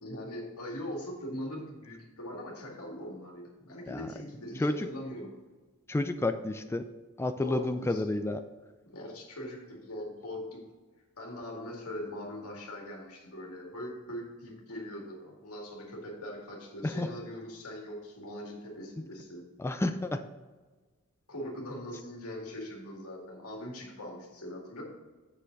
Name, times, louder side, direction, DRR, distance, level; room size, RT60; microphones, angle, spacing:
voice 1, 0.0-5.3 7.4-8.1 8.9-10.6 11.2-19.5 21.3-24.8, equal, 75° left, -1 dB, 2.1 m, -41 dB
voice 2, 5.9-6.9 7.2-8.4 16.8-17.1 19.6-20.2, left 2 dB, 10° left, 8 dB, 0.3 m, -30 dB
7.5 x 6.4 x 3.9 m, 1.3 s
head